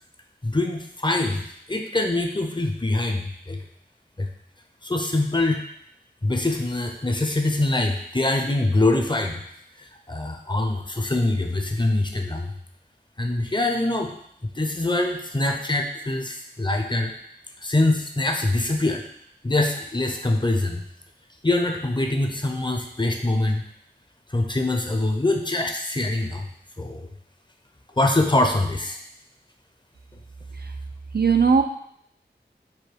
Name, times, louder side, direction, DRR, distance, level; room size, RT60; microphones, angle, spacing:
voice 1, 0.4-3.6 4.2-4.3 4.8-5.6 6.2-9.4 9.8-12.5 13.2-14.1 14.4-17.1 17.6-19.0 19.4-20.8 21.4-23.6 24.3-26.4 26.8-27.1 28.0-29.0, left 2 dB, 25° left, 3 dB, 0.6 m, -24 dB
voice 2, 31.1-31.6, right 5 dB, 65° right, 5 dB, 0.4 m, -18 dB
4.9 x 2.3 x 4.5 m, 0.69 s
wide cardioid pair, 45°, 18 cm